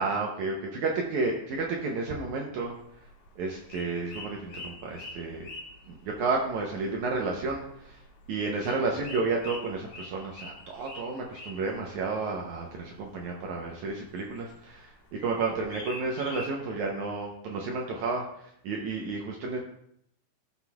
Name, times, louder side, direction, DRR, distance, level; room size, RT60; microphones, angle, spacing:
voice 1, 0.0-3.1 3.4-5.5 5.9-19.6, right 3 dB, 80° right, 0 dB, 1.7 m, -31 dB
sound 1, 2.7-16.5, left 2 dB, 90° left, 4.3 m, -47 dB
15.5 x 6.0 x 2.3 m, 0.72 s
omnidirectional pair, 4.4 m